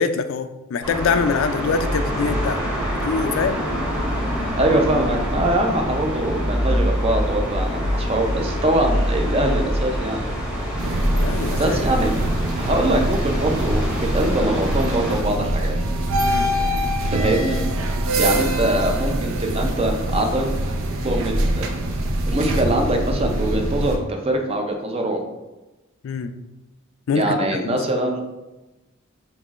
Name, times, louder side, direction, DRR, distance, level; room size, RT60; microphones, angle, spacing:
voice 1, 0.0-2.6 2.9-3.6 11.1-11.8 16.2-16.5 26.0-26.3 27.1-27.8, left 5 dB, 65° left, 10 dB, 0.3 m, -24 dB
sound 1, 0.8-15.2, equal, 5° right, 1.0 m, -25 dB
voice 2, 4.6-10.3 11.6-12.1 12.6-15.8 17.1-17.6 18.2-20.5 21.0-21.7 22.3-25.2 27.2-28.2, right 1 dB, 30° right, 3 dB, 0.5 m, -23 dB
sound 2, 10.8-24.0, right 1 dB, 75° right, 0.5 m, -24 dB
5.5 x 3.0 x 2.4 m, 1.1 s
head